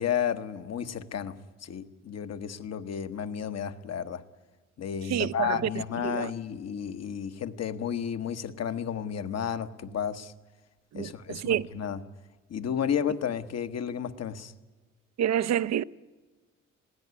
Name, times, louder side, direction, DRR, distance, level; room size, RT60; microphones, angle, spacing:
voice 1, 0.0-1.3 1.6-4.2 4.8-10.3 10.9-12.0 12.5-14.5, left 8 dB, 55° left, 1.2 m, -32 dB
voice 2, 5.1-5.6 6.0-6.3 10.9-11.7 15.2-15.8, right 10 dB, 60° right, 0.6 m, -28 dB
21.0 x 16.0 x 9.5 m
cardioid pair, 90°, 30 cm